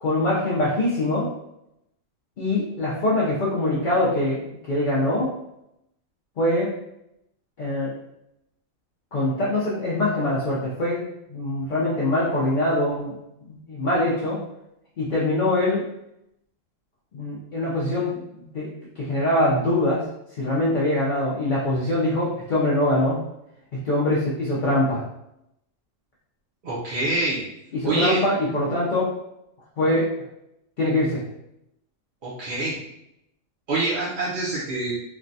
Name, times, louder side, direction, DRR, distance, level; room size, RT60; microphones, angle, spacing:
voice 1, 0.0-1.3 2.4-5.3 6.4-6.7 7.6-7.9 9.1-13.2 13.5-14.4 15.0-15.9 17.1-20.1 20.4-23.2 23.8-25.0 27.7-29.1 29.8-30.1 30.8-31.2, left 1 dB, 55° left, -7 dB, 0.5 m, -23 dB
voice 2, 26.6-27.4 27.8-28.2 32.2-32.8 33.7-34.9, right 2 dB, 50° right, -7 dB, 0.6 m, -25 dB
3.2 x 2.2 x 2.5 m, 0.83 s
omnidirectional pair, 1.4 m